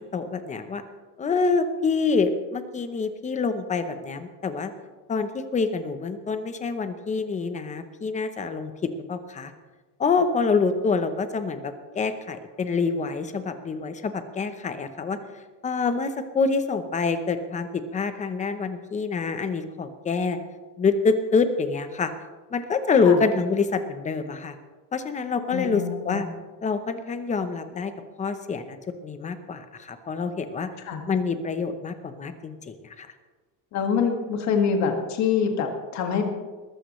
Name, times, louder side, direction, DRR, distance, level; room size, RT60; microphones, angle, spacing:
voice 1, 0.1-0.8 1.2-4.7 5.1-9.5 10.0-15.2 15.6-20.4 20.8-22.1 22.5-24.5 24.9-26.3 26.6-27.9 28.2-28.8 29.0-30.7 31.1-33.1, left 4 dB, 20° left, 9 dB, 0.8 m, -26 dB
voice 2, 25.5-26.2 30.9-31.0 33.7-36.3, left 6 dB, 45° left, 4 dB, 2.0 m, -25 dB
20.5 x 14.5 x 3.2 m, 1.3 s
cardioid pair, 170°, 39 cm